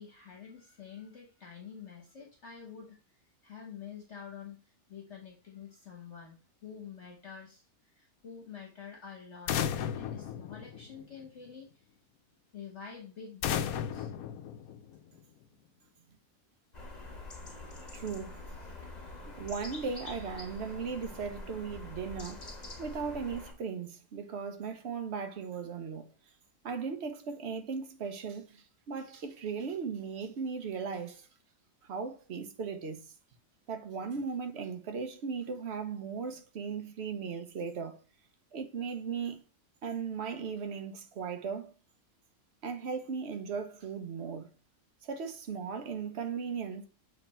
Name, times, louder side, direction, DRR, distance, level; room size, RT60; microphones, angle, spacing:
voice 1, 0.0-3.2 3.4-7.6 7.9-9.6 9.9-11.8 12.5-14.1, left 7 dB, 50° left, 1.3 m, -48 dB
sound 1, 9.5-11.3 13.4-15.2, left 9 dB, 75° left, 1.0 m, -34 dB
sound 2, 16.7-23.5, left 2 dB, 30° left, 1.3 m, -45 dB
voice 2, 17.9-18.4 19.4-22.4 22.8-26.1 26.6-31.3 31.8-33.1 33.7-38.0 38.5-39.4 39.8-41.7 42.6-44.5 45.0-46.9, right 6 dB, 50° right, 1.0 m, -37 dB
7.6 x 3.3 x 4.2 m
omnidirectional pair, 1.6 m